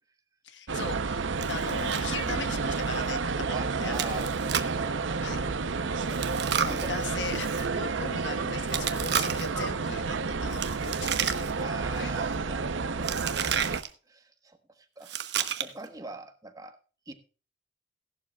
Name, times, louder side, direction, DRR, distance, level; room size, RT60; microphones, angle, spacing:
voice 1, 0.4-4.3 5.2-5.4 6.6-11.3 11.9-12.1, left 4 dB, 70° left, 9 dB, 1.3 m, -39 dB
sound 1, 0.7-13.8, right 4 dB, 80° right, 0.7 m, -30 dB
Chewing mastication, 1.4-2.1 2.3-2.4 2.9-3.1 3.9-4.8 6.1-7.7 8.7-9.6 10.5-11.7 12.0-12.3 13.0-13.9 15.0-15.9, right 8 dB, 60° right, 1.0 m, -32 dB
voice 2, 3.5-5.2 6.1-7.2 11.6-13.5 14.1-16.8 17.1-17.2, right 2 dB, 20° right, 7 dB, 1.2 m, -43 dB
17.0 x 11.5 x 2.3 m, 0.37 s
head